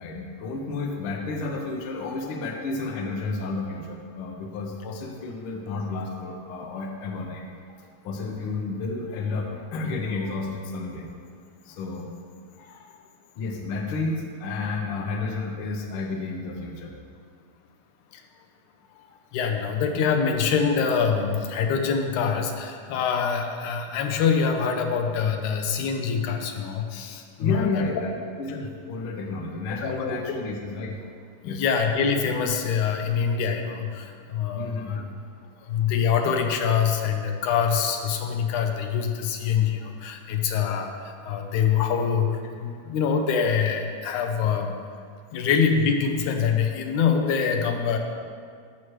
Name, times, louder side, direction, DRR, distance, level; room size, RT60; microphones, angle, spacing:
voice 1, 0.0-7.5 7.8-11.1 11.6-12.1 12.6-12.9 13.3-16.9 18.3-18.4 18.9-19.2 27.4-31.1 31.4-31.6 34.5-35.1, left 3 dB, 65° left, 1 dB, 1.4 m, -31 dB
voice 2, 19.3-27.8 29.8-30.2 31.4-35.0 35.7-44.8 45.3-48.0, left 6 dB, 85° left, 4 dB, 2.2 m, -25 dB
14.0 x 6.1 x 3.1 m, 2.1 s
omnidirectional pair, 3.4 m